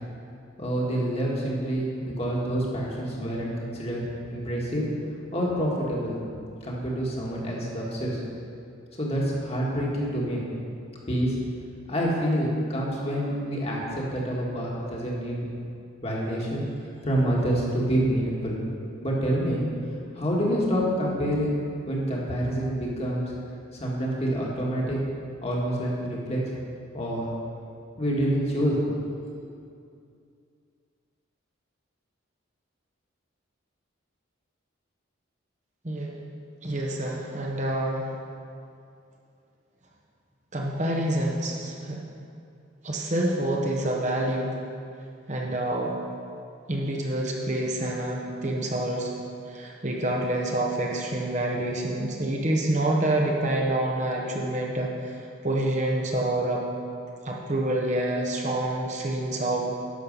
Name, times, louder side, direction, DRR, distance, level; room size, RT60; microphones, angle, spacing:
voice 1, 0.6-4.0 4.3-4.8 5.3-6.2 6.6-8.2 9.0-10.4 11.1-11.3 11.9-15.5 16.0-16.6 17.0-18.5 19.0-19.7 20.1-21.6 21.9-23.3 23.7-25.0 25.4-26.4 26.9-27.3 28.0-28.8, equal, 30° left, -4 dB, 1.7 m, -27 dB
voice 2, 35.8-36.2 36.6-38.1 40.5-42.0 42.8-44.6 45.3-45.9 46.7-49.1 49.5-56.7 57.2-59.6, right 1 dB, 35° right, -1 dB, 1.0 m, -27 dB
11.0 x 6.5 x 5.4 m, 2.4 s
head